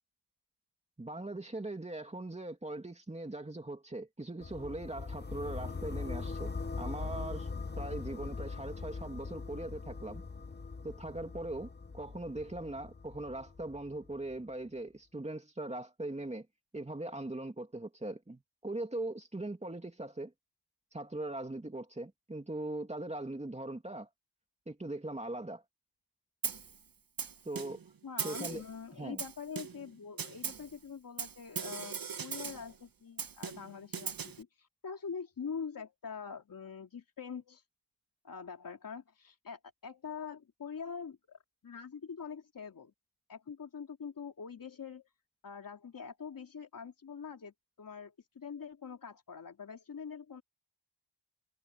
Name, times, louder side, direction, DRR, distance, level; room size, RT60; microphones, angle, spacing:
voice 1, 1.0-7.5 7.8-10.2 10.8-16.5 16.7-20.3 20.9-24.1 24.7-25.6 27.4-27.8 28.2-28.6 28.9-29.2, right 2 dB, 15° right, 2.8 m, -40 dB
sound 1, 4.4-14.3, left 4 dB, 25° left, 1.2 m, -41 dB
Snare drum, 26.4-26.8 27.2-27.9 28.2-28.7 29.2-29.9 30.2-30.7 31.2-32.7 33.2-34.4, right 6 dB, 55° right, 1.9 m, -39 dB
voice 2, 28.0-37.6 38.2-42.9 43.3-45.1 45.4-50.4, left 6 dB, 55° left, 3.0 m, -44 dB
wide cardioid pair, 115°, 40 cm